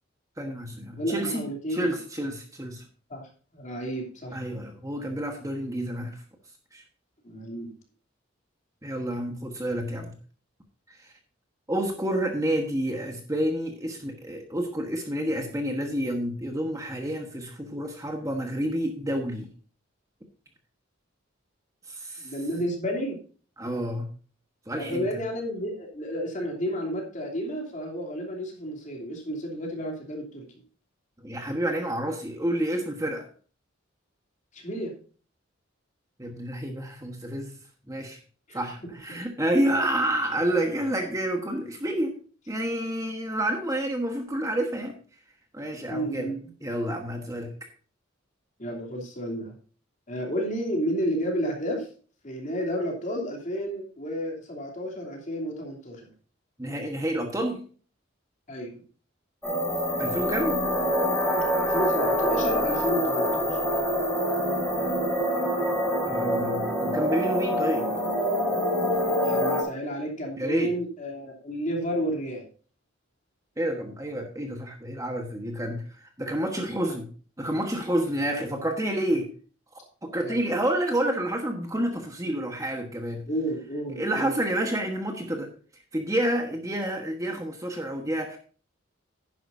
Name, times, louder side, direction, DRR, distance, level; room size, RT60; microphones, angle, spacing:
voice 1, 0.4-2.8 4.3-6.2 6.7-6.8 8.8-10.1 10.9-11.1 11.7-19.5 21.9-22.3 23.6-24.1 24.7-25.1 31.2-33.3 36.2-37.6 37.9-38.2 38.5-42.1 42.5-45.0 45.5-46.3 46.6-47.5 56.6-57.6 60.0-60.6 66.1-67.8 70.4-70.7 73.6-77.1 77.4-79.3 80.0-83.2 84.0-85.5 85.9-88.4, right 1 dB, 15° right, 3 dB, 1.3 m, -29 dB
voice 2, 0.9-1.9 3.1-4.4 7.2-7.7 22.2-23.2 24.8-30.4 34.5-34.9 38.5-38.6 39.1-39.2 45.9-46.5 48.6-49.5 50.1-51.9 52.2-56.1 58.5-58.8 61.6-63.6 69.2-72.4 76.8-77.0 78.2-78.4 80.2-80.4 83.3-84.3, equal, 40° left, 0 dB, 3.0 m, -31 dB
sound 1, 59.4-69.6, equal, 5° left, 4.1 m, -25 dB
11.0 x 10.5 x 2.6 m, 0.39 s
head